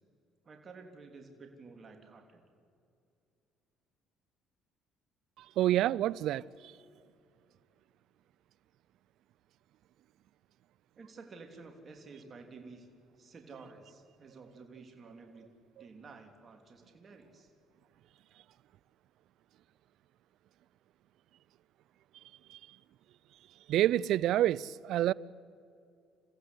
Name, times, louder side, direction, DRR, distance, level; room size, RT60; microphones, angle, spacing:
voice 1, 0.4-2.4 11.0-15.5 15.8-17.5, right 4 dB, 40° right, 3.3 m, -52 dB
voice 2, 5.6-6.4 22.5-22.6 23.7-25.1, right 13 dB, 70° right, 0.5 m, -27 dB
29.5 x 15.5 x 8.2 m
supercardioid pair, 80°, 0 cm